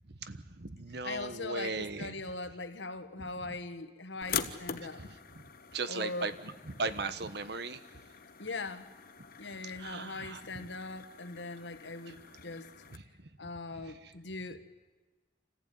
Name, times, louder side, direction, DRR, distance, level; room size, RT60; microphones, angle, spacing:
voice 1, 0.2-2.1 5.7-6.3 6.7-7.8 9.8-10.4 12.9-13.0, right 3 dB, 65° right, 12 dB, 1.2 m, -37 dB
voice 2, 1.0-5.0 5.9-6.3 8.4-8.9 9.4-12.7 13.4-14.7, left 3 dB, 80° left, 9 dB, 1.6 m, -41 dB
sound 1, 4.2-13.0, left 7 dB, 50° left, 1.2 m, -44 dB
27.0 x 15.0 x 9.4 m, 1.2 s
head